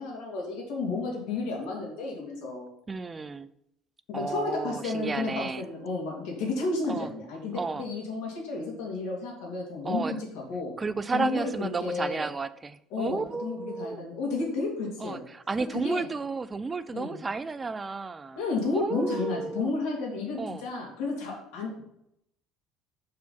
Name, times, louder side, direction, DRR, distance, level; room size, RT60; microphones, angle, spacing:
voice 1, 0.0-2.7 4.1-10.7 11.1-12.3 12.9-15.2 15.7-16.1 16.9-17.2 18.4-21.8, left 3 dB, 75° left, 0 dB, 2.4 m, -32 dB
voice 2, 2.9-3.5 4.1-5.6 6.9-7.1 7.5-7.9 9.8-10.2 10.8-14.0 15.0-18.4 18.7-19.7 20.4-20.6, right 4 dB, 15° right, 13 dB, 0.3 m, -32 dB
5.7 x 4.9 x 5.5 m, 0.77 s
cardioid pair, 155°, 0 cm